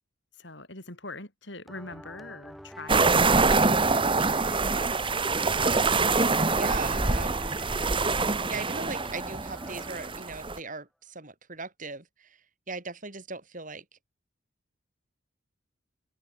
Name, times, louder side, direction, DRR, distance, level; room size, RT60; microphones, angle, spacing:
voice 1, 0.4-3.8 6.2-6.4, left 2 dB, 65° left, 5.8 m, -43 dB
sound 1, 1.7-10.6, equal, ahead, 4.2 m, -46 dB
sound 2, 2.9-10.6, right 3 dB, 25° right, 1.5 m, -25 dB
voice 2, 6.1-7.4 8.5-13.9, right 3 dB, 40° right, 5.5 m, -39 dB
head